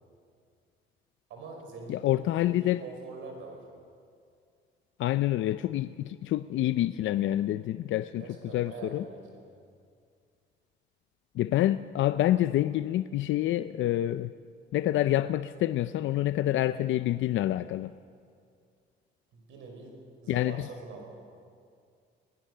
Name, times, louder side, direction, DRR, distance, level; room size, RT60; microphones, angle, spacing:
voice 1, 1.3-3.7 8.2-9.5 19.3-21.2, right 3 dB, 85° right, 2 dB, 5.4 m, -44 dB
voice 2, 1.9-2.8 5.0-8.2 8.5-9.0 11.4-14.3 14.7-17.9 20.3-20.7, left 13 dB, 75° left, 13 dB, 0.5 m, -27 dB
20.5 x 20.0 x 6.7 m, 2.2 s
cardioid pair, 90°, 20 cm